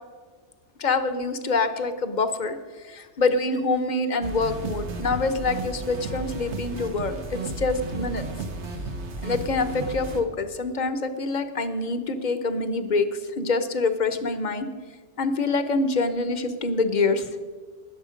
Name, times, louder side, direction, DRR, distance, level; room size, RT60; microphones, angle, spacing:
voice 1, 0.8-2.6 2.8-8.3 9.2-14.7 15.2-17.4, left 3 dB, 45° left, 10 dB, 0.9 m, -25 dB
sound 1, 4.2-10.2, right 3 dB, 75° right, 1.4 m, -33 dB
19.5 x 7.1 x 5.1 m, 1.5 s
omnidirectional pair, 1.2 m